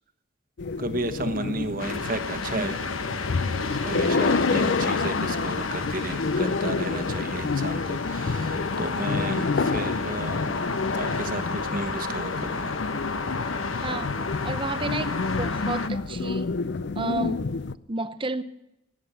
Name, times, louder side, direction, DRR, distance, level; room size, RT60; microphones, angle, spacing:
sound 1, 0.6-17.7, left 4 dB, 60° left, 0.5 m, -29 dB
voice 1, 0.8-2.8 3.7-10.6 10.9-12.8, right 2 dB, 45° right, 1.2 m, -33 dB
sound 2, 1.8-15.9, left 4 dB, 85° left, 1.3 m, -31 dB
voice 2, 13.8-14.2 14.4-16.6 17.0-17.5 17.9-18.4, right 3 dB, 25° right, 0.8 m, -31 dB
17.0 x 8.9 x 9.5 m
head